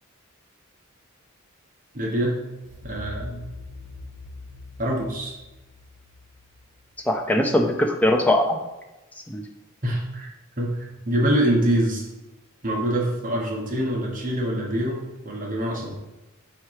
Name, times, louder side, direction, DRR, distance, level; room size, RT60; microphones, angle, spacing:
voice 1, 1.9-2.4 2.8-3.5 4.8-5.3 9.8-12.0 12.6-15.9, right 1 dB, 40° right, -2 dB, 1.3 m, -25 dB
sound 1, 2.6-7.5, left 1 dB, 80° right, 1.4 m, -42 dB
voice 2, 7.1-8.6 9.3-9.4, left 1 dB, 5° left, 2 dB, 0.6 m, -21 dB
4.8 x 4.4 x 4.8 m, 1.0 s
head